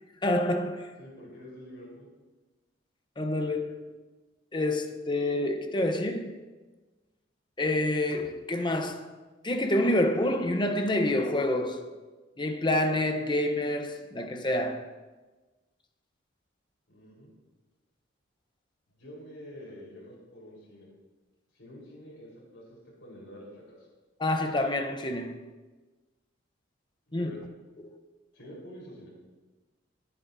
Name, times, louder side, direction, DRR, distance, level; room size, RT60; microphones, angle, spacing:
voice 1, 0.2-0.9 3.2-3.8 4.5-6.3 7.6-9.1 9.4-11.9 12.4-14.9 24.2-25.4 27.1-27.3 27.8-28.0, left 1 dB, 25° left, 0.8 m, -28 dB
voice 2, 1.0-2.1 16.9-17.3 19.0-20.9 21.5-23.9 27.1-27.4 28.3-29.1, left 1 dB, 70° left, 4.2 m, -47 dB
21.5 x 8.7 x 2.7 m
head